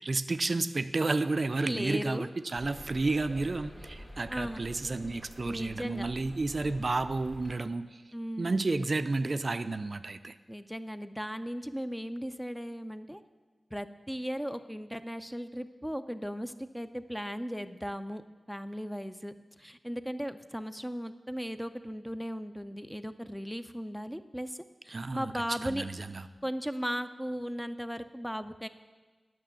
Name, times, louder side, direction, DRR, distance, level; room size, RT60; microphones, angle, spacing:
voice 1, 0.0-8.0 8.4-10.4 24.9-25.3 25.6-26.3, right 3 dB, 50° right, 11 dB, 0.4 m, -31 dB
voice 2, 1.6-2.3 4.3-4.6 5.4-6.1 8.1-8.7 10.5-13.2 13.7-19.3 19.6-25.9 26.4-28.7, equal, 5° left, 10 dB, 0.5 m, -37 dB
sound 1, 2.6-7.5, equal, 25° left, 1.9 m, -47 dB
9.2 x 6.1 x 7.1 m, 1.4 s
cardioid pair, 55°, 0 cm